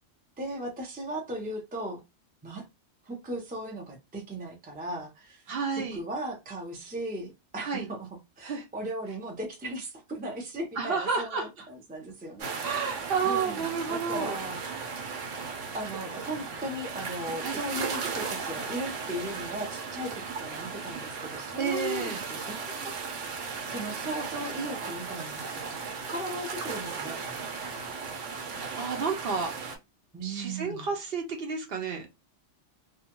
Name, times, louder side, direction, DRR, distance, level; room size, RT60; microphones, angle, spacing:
voice 1, 0.4-2.0 2.4-2.7 3.0-8.1 8.4-12.9 13.2-14.6 15.7-23.1 23.7-27.7 30.1-30.9, right 1 dB, 15° right, 0.4 m, -37 dB
voice 2, 5.5-6.0 7.6-7.9 8.4-8.7 10.8-11.5 12.6-14.4 17.4-17.6 21.6-22.2 28.8-29.5 30.2-32.2, right 5 dB, 60° right, 0.7 m, -31 dB
sound 1, 12.4-29.8, right 5 dB, 80° right, 1.1 m, -36 dB
2.4 x 2.2 x 2.9 m
omnidirectional pair, 1.2 m